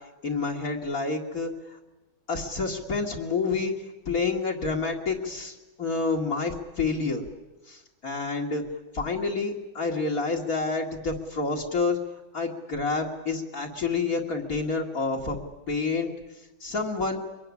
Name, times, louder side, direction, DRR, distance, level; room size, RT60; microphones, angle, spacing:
voice 1, 0.2-1.5 2.3-3.7 4.1-7.2 7.7-8.6 8.9-12.0 12.3-15.4 15.7-16.1 16.6-17.2, left 4 dB, 55° left, -1 dB, 2.6 m, -28 dB
24.0 x 21.5 x 9.8 m, 1.1 s
omnidirectional pair, 1.9 m